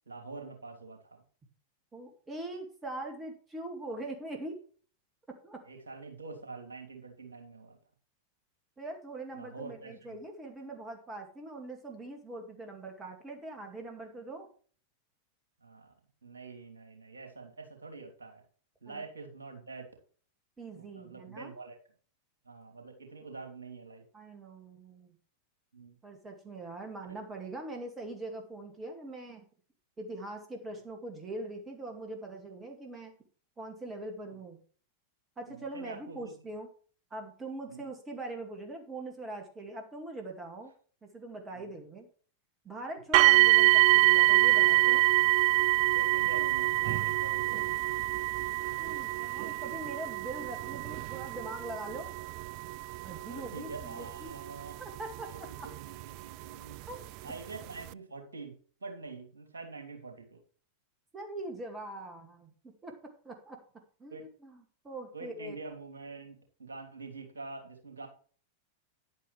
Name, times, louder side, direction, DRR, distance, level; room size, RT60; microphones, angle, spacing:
voice 1, 0.1-1.2 5.6-7.8 9.3-10.2 15.6-15.9 16.2-18.4 18.8-19.9 20.7-21.8 22.4-24.0 25.7-26.0 34.3-34.4 35.5-36.4 37.7-37.9 41.5-41.7 45.9-47.6 53.3-54.8 55.3-56.8 57.2-58.5 58.8-60.4 64.1-64.3 65.1-68.1, right 3 dB, 70° right, 5 dB, 3.0 m, -45 dB
voice 2, 1.9-4.6 5.4-5.6 8.8-14.5 18.9-19.0 20.6-21.5 24.1-25.2 26.0-29.5 30.0-33.1 33.6-34.6 35.4-36.7 37.1-40.7 41.0-42.1 42.6-45.0 48.8-52.2 53.0-54.3 54.8-55.3 55.6-55.7 56.9-57.0 61.1-62.5 62.8-63.0 63.2-63.6 64.0-65.6, right 2 dB, 20° right, 3 dB, 2.2 m, -42 dB
sound 1, 43.1-56.0 56.9-57.0 57.5-57.6, right 21 dB, 45° right, 0.3 m, -26 dB
10.5 x 9.5 x 3.3 m, 0.42 s
figure-of-eight pair, 90°, 0 cm